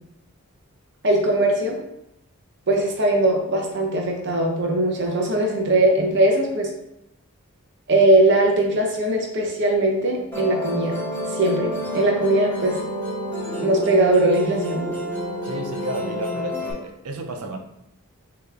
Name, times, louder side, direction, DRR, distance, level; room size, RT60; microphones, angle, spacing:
voice 1, 1.0-1.8 2.7-6.7 7.9-11.0 11.3-12.8 13.6-14.9, right 1 dB, 50° right, 0 dB, 0.8 m, -20 dB
Musical instrument, 10.3-16.7, equal, 10° left, 1.0 m, -29 dB
voice 2, 15.4-17.6, right 2 dB, 85° right, 5 dB, 0.6 m, -32 dB
6.4 x 3.0 x 2.5 m, 0.85 s
head